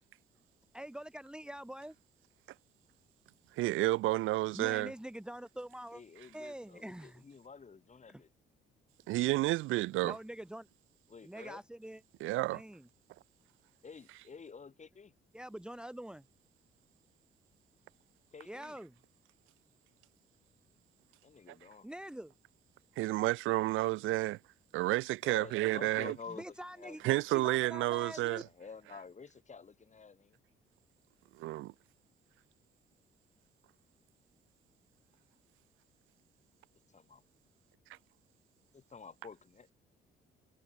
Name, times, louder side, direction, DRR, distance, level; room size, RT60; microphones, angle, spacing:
voice 1, 0.7-2.0 4.5-6.0 6.3-7.2 8.1-8.2 10.0-10.7 11.2-12.0 12.4-12.9 15.3-16.3 18.4-18.9 21.8-22.3 26.3-27.0 27.3-28.4, right 1 dB, 5° right, 1.1 m, -45 dB
voice 2, 3.6-4.9 9.1-10.1 12.2-12.6 23.0-24.4 24.7-26.1 27.0-28.4 31.4-31.7, right 18 dB, 85° right, 0.5 m, -30 dB
voice 3, 5.9-8.3 11.1-11.6 13.8-15.1 18.3-18.8 21.2-21.9 25.2-27.1 28.1-30.4 36.9-37.2 38.7-39.7, left 5 dB, 35° left, 5.3 m, -50 dB
cardioid pair, 90°, 20 cm